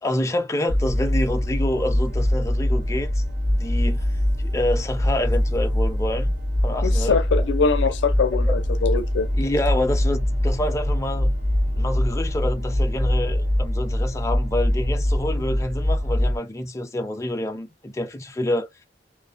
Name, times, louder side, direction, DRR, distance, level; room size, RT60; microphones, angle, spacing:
voice 1, 0.0-4.1 4.4-6.3 6.6-7.2 9.4-11.3 11.8-18.7, left 1 dB, 15° left, 0.4 m, -27 dB
sound 1, 0.7-16.4, left 1 dB, 75° right, 1.2 m, -23 dB
voice 2, 6.8-9.3, left 5 dB, 90° left, 0.5 m, -23 dB
2.5 x 2.1 x 2.4 m
head